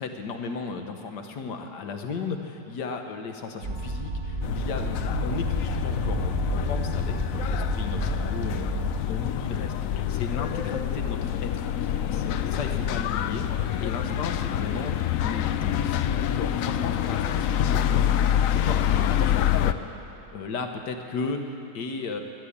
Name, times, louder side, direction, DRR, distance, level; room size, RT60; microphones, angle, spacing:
voice 1, 0.0-8.8 9.1-9.7 10.1-18.2 18.5-19.8 20.3-22.2, left 4 dB, 65° left, 5 dB, 1.7 m, -35 dB
sound 1, 3.6-9.0, right 2 dB, 50° right, 1.4 m, -31 dB
sound 2, 4.4-19.7, left 10 dB, 85° left, 0.7 m, -26 dB
13.0 x 11.5 x 8.6 m, 2.8 s
omnidirectional pair, 2.0 m